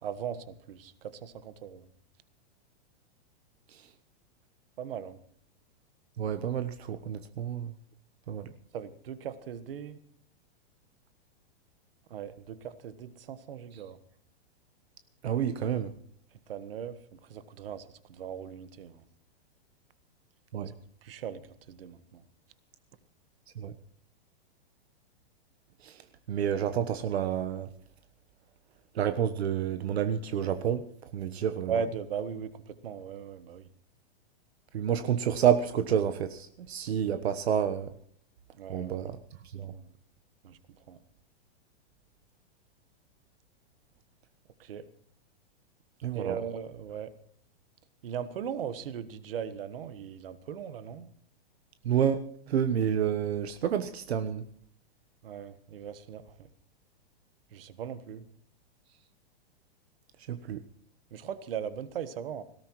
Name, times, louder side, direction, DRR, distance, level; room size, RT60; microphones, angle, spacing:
voice 1, 0.0-1.9 4.8-5.2 8.7-10.0 12.1-14.0 16.5-19.0 21.0-22.2 31.7-33.7 38.6-39.0 39.7-39.8 40.4-40.6 40.9-41.0 44.6-44.8 46.1-47.1 48.0-51.1 55.2-56.5 57.5-58.3 61.1-62.4, right 7 dB, 60° right, 1.4 m, -38 dB
voice 2, 6.2-7.7 8.3-8.5 15.2-15.9 20.5-20.7 23.6-23.7 25.8-26.0 26.3-27.7 28.9-30.8 31.1-31.7 34.7-37.9 38.7-39.2 39.5-39.7 46.0-46.4 51.8-52.2 52.5-54.4 60.3-60.6, right 9 dB, 75° right, 1.2 m, -29 dB
19.0 x 17.5 x 3.1 m
supercardioid pair, 180°, 32 cm